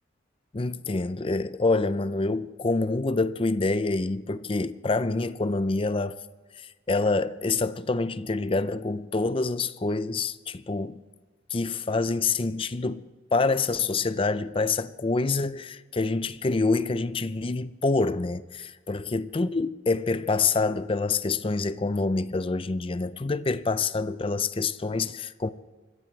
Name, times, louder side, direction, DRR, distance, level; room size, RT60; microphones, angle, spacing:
voice 1, 0.5-6.2 6.9-11.0 11.5-25.5, left 3 dB, 30° left, 0.5 m, -26 dB
26.5 x 15.0 x 3.2 m
head